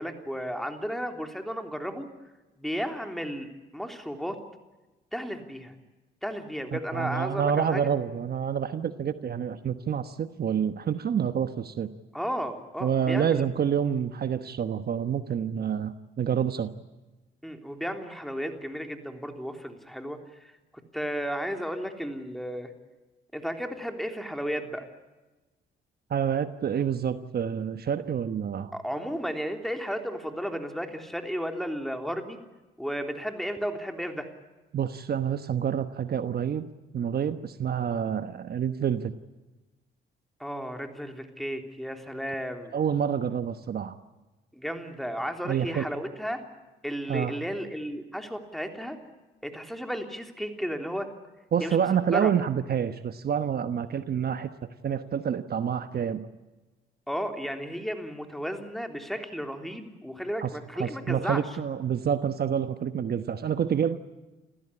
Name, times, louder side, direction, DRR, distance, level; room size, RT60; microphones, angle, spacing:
voice 1, 0.0-2.1 2.6-4.4 5.1-5.7 6.2-7.9 12.1-13.5 17.4-20.5 20.9-22.7 23.3-24.8 28.7-32.4 32.8-34.3 40.4-42.8 44.5-46.4 46.8-49.0 49.4-51.1 51.6-51.8 52.1-52.3 57.1-61.4, equal, ahead, 5 dB, 3.4 m, -33 dB
voice 2, 6.7-11.9 12.8-16.7 26.1-28.7 34.7-36.7 36.9-39.1 42.7-44.0 45.4-45.8 47.1-47.4 51.5-54.5 54.8-56.3 60.4-60.5 60.8-64.0, right 8 dB, 50° right, 10 dB, 1.2 m, -28 dB
28.5 x 15.5 x 9.8 m, 1.1 s
cardioid pair, 90°, 20 cm